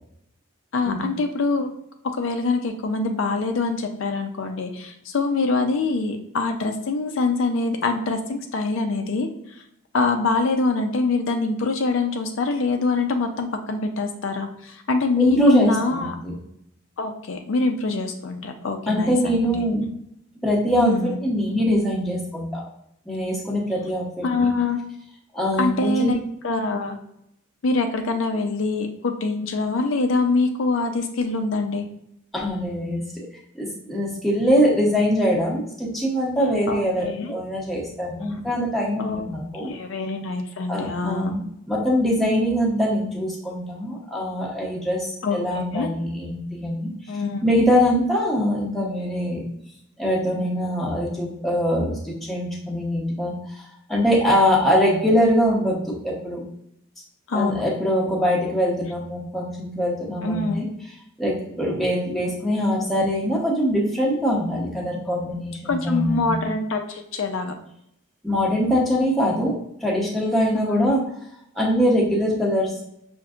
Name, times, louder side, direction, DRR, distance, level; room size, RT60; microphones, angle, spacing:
voice 1, 0.7-1.7 2.1-9.6 9.9-16.1 17.0-19.6 20.8-21.2 24.2-24.8 25.6-27.0 27.6-31.9 36.7-37.3 39.0-39.2 39.6-41.3 45.2-45.9 47.1-47.4 57.3-57.6 60.2-60.7 65.7-67.5 70.6-70.9, left 3 dB, 65° left, 5 dB, 0.4 m, -24 dB
voice 2, 15.2-16.4 18.9-19.9 20.4-22.6 23.1-24.5 25.3-26.1 32.3-33.3 33.5-39.7 40.7-46.9 47.4-49.4 50.0-56.4 57.3-60.6 61.2-66.4 68.2-71.0 71.5-72.8, equal, ahead, -4 dB, 0.8 m, -23 dB
5.6 x 2.6 x 2.4 m, 0.76 s
head